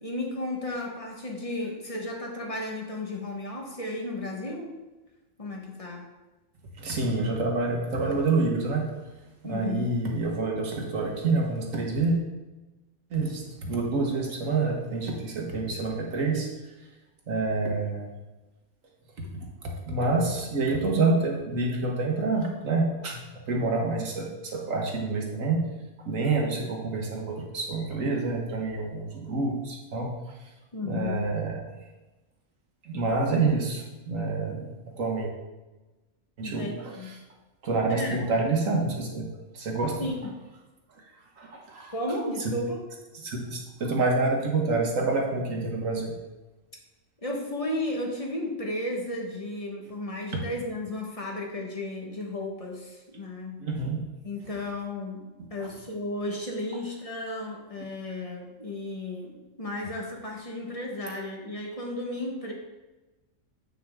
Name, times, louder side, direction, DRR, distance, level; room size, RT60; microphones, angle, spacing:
voice 1, 0.0-4.8 5.4-6.1 9.4-10.0 30.7-31.3 36.4-37.1 37.9-38.2 40.0-40.3 41.9-42.8 47.2-53.6 54.2-62.5, left 1 dB, 25° left, -1 dB, 1.2 m, -34 dB
voice 2, 6.8-8.9 9.4-12.2 13.1-16.5 17.3-18.1 19.2-25.6 26.1-30.1 30.8-31.7 32.8-35.3 36.4-37.2 37.6-40.1 41.4-41.9 42.5-42.6 43.1-46.1 53.6-54.1 55.6-55.7, right 3 dB, 70° right, 0 dB, 1.7 m, -28 dB
8.3 x 5.9 x 3.5 m, 1.1 s
omnidirectional pair, 1.4 m